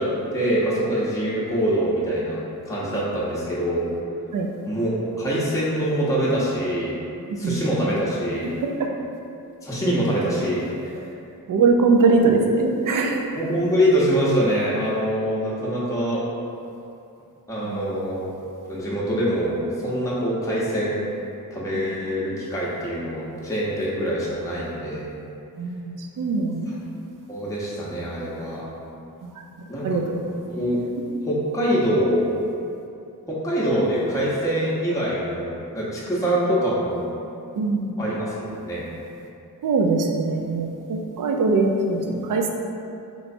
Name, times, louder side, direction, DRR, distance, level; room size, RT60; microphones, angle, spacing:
voice 1, 0.0-2.4 2.7-3.9 4.7-7.0 7.4-8.5 9.6-10.9 13.4-16.2 17.5-18.3 18.7-19.6 19.8-21.1 21.5-25.1 27.3-28.6 29.7-30.0 30.5-30.8 31.2-32.3 33.3-37.1 38.0-38.9, equal, 10° left, -8 dB, 0.8 m, -24 dB
voice 2, 8.5-8.9 11.5-13.2 17.6-17.8 25.6-26.7 29.2-29.3 29.8-30.2 37.6-38.0 39.6-42.5, right 3 dB, 55° right, 2 dB, 0.5 m, -22 dB
3.1 x 3.1 x 2.6 m, 2.7 s
cardioid pair, 45°, 38 cm